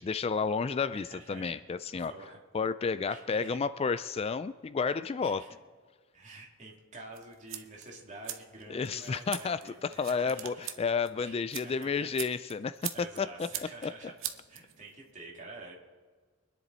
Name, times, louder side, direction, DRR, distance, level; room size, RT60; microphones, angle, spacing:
voice 1, 0.0-2.1 2.5-5.4 8.7-13.3 13.8-13.9, left 5 dB, 30° left, 14 dB, 0.3 m, -31 dB
voice 2, 0.9-1.6 2.0-2.4 3.0-3.6 5.2-5.5 6.1-10.7 11.2-12.1 12.9-15.7, right 2 dB, 35° right, -1 dB, 2.7 m, -48 dB
sound 1, 7.1-15.1, right 11 dB, 75° right, 0.9 m, -43 dB
24.0 x 10.5 x 4.1 m, 1.5 s
head